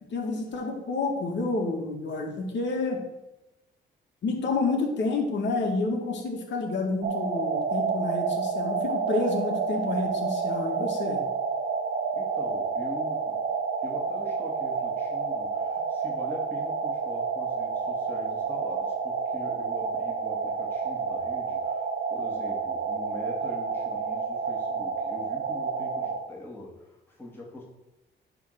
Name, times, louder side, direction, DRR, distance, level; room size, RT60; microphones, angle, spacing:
voice 1, 0.1-3.0 4.2-11.2, left 3 dB, 65° left, 2 dB, 2.1 m, -29 dB
sound 1, 7.0-26.2, right 5 dB, 55° right, 1.5 m, -29 dB
voice 2, 12.1-13.4 13.8-27.6, left 1 dB, 10° left, -4 dB, 2.4 m, -43 dB
10.0 x 3.8 x 6.6 m, 0.94 s
cardioid pair, 90°, 20 cm